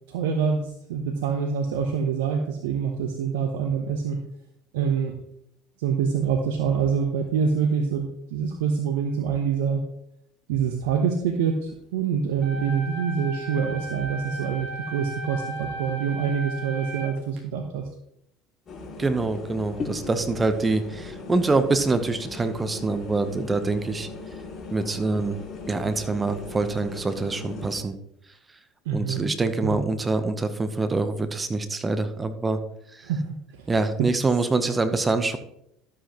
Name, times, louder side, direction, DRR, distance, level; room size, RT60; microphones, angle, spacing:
voice 1, 0.1-4.2 4.7-5.1 5.8-9.8 10.5-17.9 28.8-29.3 29.6-29.8 33.0-33.7 34.0-34.1, right 6 dB, 75° right, 5 dB, 0.9 m, -26 dB
sound 1, 12.4-17.4, right 2 dB, 60° right, 2.0 m, -36 dB
sound 2, 18.7-27.8, left 3 dB, 40° left, 2.2 m, -38 dB
voice 2, 19.0-24.1 24.7-25.4 25.7-28.0 28.9-32.6 33.7-35.4, right 3 dB, 20° right, 10 dB, 0.9 m, -25 dB
12.5 x 7.7 x 3.0 m, 0.76 s
hypercardioid pair, 70°, 0 cm